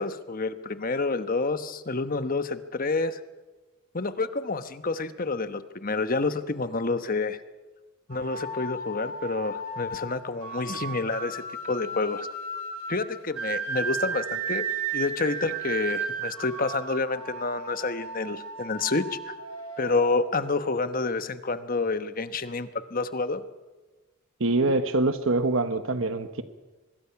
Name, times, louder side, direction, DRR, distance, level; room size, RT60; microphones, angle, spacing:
voice 1, 0.0-3.2 3.9-7.4 8.1-12.3 12.9-14.6 14.9-19.3 19.8-23.4, left 3 dB, 40° left, 11 dB, 1.1 m, -28 dB
sound 1, 8.1-20.9, right 4 dB, 85° right, 5.0 m, -35 dB
voice 2, 24.4-26.4, right 2 dB, 65° right, 10 dB, 1.2 m, -24 dB
24.5 x 21.5 x 5.9 m, 1.2 s
head